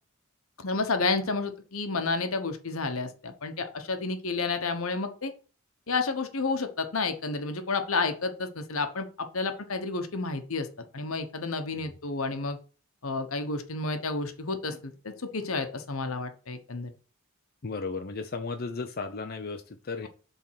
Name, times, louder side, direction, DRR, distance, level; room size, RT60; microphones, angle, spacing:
voice 1, 0.6-5.3 5.9-10.7 10.9-12.6 13.0-16.9, left 3 dB, 80° left, 8 dB, 1.1 m, -30 dB
voice 2, 17.6-20.1, left 4 dB, 45° left, 5 dB, 0.6 m, -35 dB
7.5 x 3.7 x 5.7 m, 0.37 s
head